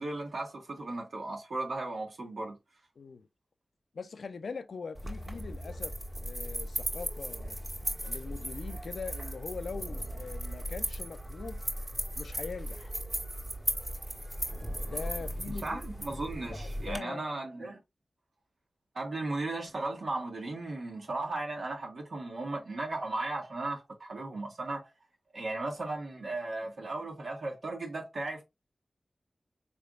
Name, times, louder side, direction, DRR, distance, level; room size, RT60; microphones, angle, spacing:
voice 1, 0.0-2.6 15.5-17.8 18.9-24.9 25.3-28.4, right 2 dB, 80° right, 1.6 m, -36 dB
voice 2, 3.0-3.3 3.9-5.9 6.2-7.6 8.1-11.6 12.1-12.9 14.8-15.8 16.5-17.3, left 5 dB, 85° left, 0.4 m, -42 dB
sound 1, 4.9-17.0, right 1 dB, 30° right, 1.4 m, -37 dB
4.7 x 3.4 x 2.4 m
cardioid pair, 45°, 0 cm